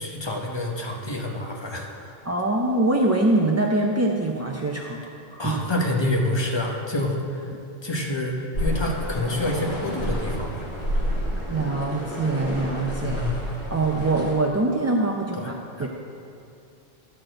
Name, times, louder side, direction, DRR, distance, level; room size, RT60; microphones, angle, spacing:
voice 1, 0.0-2.2 5.4-7.5 7.8-10.7 13.0-13.4 15.3-15.9, left 1 dB, 25° left, 0 dB, 1.0 m, -27 dB
voice 2, 2.3-5.0 5.3-5.6 11.5-13.2 13.7-15.5 15.8-15.9, right 2 dB, 25° right, -1 dB, 0.3 m, -23 dB
sound 1, 8.5-14.3, equal, 80° left, 2.7 m, -29 dB
11.5 x 4.2 x 7.7 m, 2.5 s
omnidirectional pair, 1.1 m